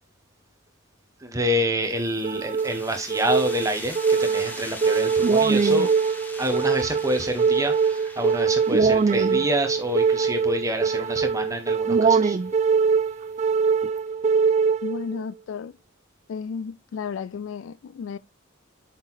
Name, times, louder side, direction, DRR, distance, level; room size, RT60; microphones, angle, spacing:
voice 1, 1.2-5.9 6.4-12.4, equal, 15° right, 1.2 m, -27 dB
sound 1, 1.8-13.2, left 1 dB, 10° left, 1.1 m, -43 dB
sound 2, 2.2-15.2, right 5 dB, 35° right, 0.3 m, -22 dB
voice 2, 14.8-15.7 16.3-18.2, left 6 dB, 70° left, 0.3 m, -33 dB
6.4 x 5.8 x 3.0 m
head